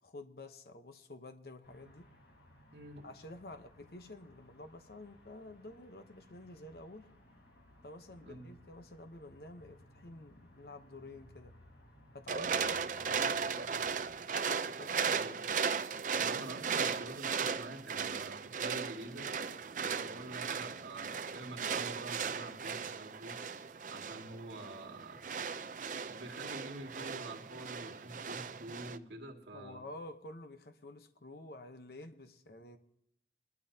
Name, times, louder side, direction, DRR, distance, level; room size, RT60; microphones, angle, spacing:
voice 1, 0.0-2.1 3.0-7.1 7.8-11.5 12.1-13.9 14.6-15.5 29.5-32.8, left 2 dB, 60° left, 0.9 m, -50 dB
sound 1, 1.6-14.1, left 1 dB, 75° left, 4.2 m, -61 dB
voice 2, 2.7-3.1 8.2-8.5 15.1-15.4 16.2-19.3 19.8-23.4 23.9-25.5 26.1-29.8, right 2 dB, 75° right, 2.3 m, -47 dB
sound 2, 12.3-29.0, right 6 dB, 45° right, 0.5 m, -37 dB
21.5 x 12.0 x 2.8 m
head